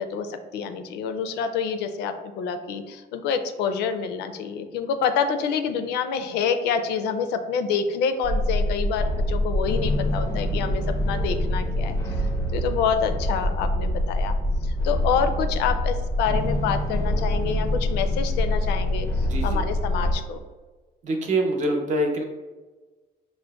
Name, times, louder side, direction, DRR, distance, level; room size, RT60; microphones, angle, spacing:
voice 1, 0.0-14.3 14.6-20.4, left 6 dB, 80° left, 8 dB, 0.4 m, -27 dB
sound 1, 8.2-20.1, left 1 dB, 20° left, 0.4 m, -25 dB
voice 2, 19.2-19.6 21.0-22.2, right 1 dB, 45° right, 2 dB, 0.7 m, -25 dB
5.0 x 2.1 x 2.3 m, 1.3 s
cardioid pair, 110°, 17 cm